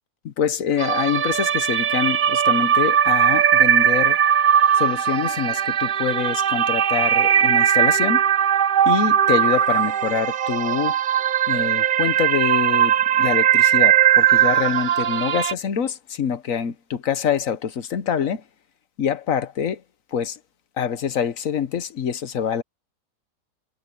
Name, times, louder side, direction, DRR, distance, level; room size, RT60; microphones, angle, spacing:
voice 1, 0.2-4.2 4.8-8.2 8.9-10.9 11.5-18.4 19.0-19.8 20.1-20.4 20.8-22.6, left 7 dB, 60° left, 1.3 m, -25 dB
sound 1, 0.8-15.5, right 9 dB, 65° right, 0.5 m, -19 dB
omnidirectional pair, 1.7 m